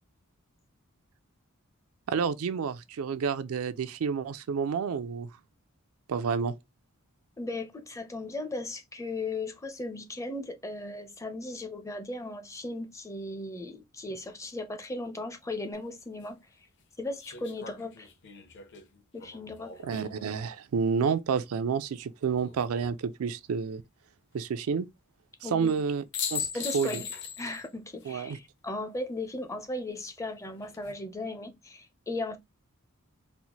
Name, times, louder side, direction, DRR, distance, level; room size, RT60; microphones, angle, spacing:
voice 1, 2.1-5.3 6.1-6.5 19.8-23.8 24.3-24.9 25.4-26.0 26.3-27.0 28.0-28.4, right 6 dB, 75° right, 0.4 m, -29 dB
voice 2, 7.4-16.4 17.0-18.1 19.1-19.7 25.4-25.7 26.5-27.1 27.4-32.4, left 2 dB, 15° left, 0.5 m, -37 dB
sound 1, 15.7-15.8 17.2-20.4 22.2-22.9 25.7-25.8 26.1-27.7 28.0-28.1 30.4-30.9, left 7 dB, 55° left, 0.8 m, -39 dB
4.1 x 2.0 x 2.9 m
head